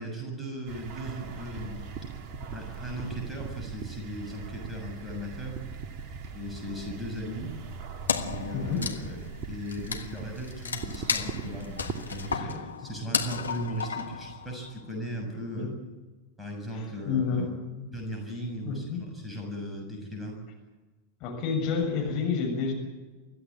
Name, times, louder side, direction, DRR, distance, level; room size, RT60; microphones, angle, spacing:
voice 1, 0.0-1.8 2.5-5.6 6.3-7.6 8.2-15.7 16.4-17.5 17.9-20.4, equal, ahead, 0 dB, 6.9 m, -37 dB
sound 1, 0.7-12.4, right 5 dB, 40° right, 2.2 m, -40 dB
Wood, 8.1-14.8, left 6 dB, 75° left, 1.4 m, -33 dB
voice 2, 16.7-17.5 17.8-17.9 18.6-19.0 21.2-22.7, left 5 dB, 40° left, 1 dB, 7.0 m, -29 dB
25.0 x 15.0 x 8.7 m, 1.2 s
figure-of-eight pair, 90°, 0 cm